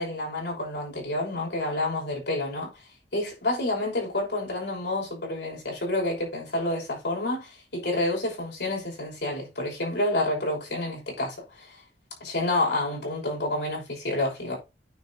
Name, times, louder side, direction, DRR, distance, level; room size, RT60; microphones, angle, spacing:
voice 1, 0.0-2.7 3.1-11.7 12.2-14.6, left 2 dB, 70° left, 6.1 m, -29 dB
9.3 x 5.3 x 4.1 m
head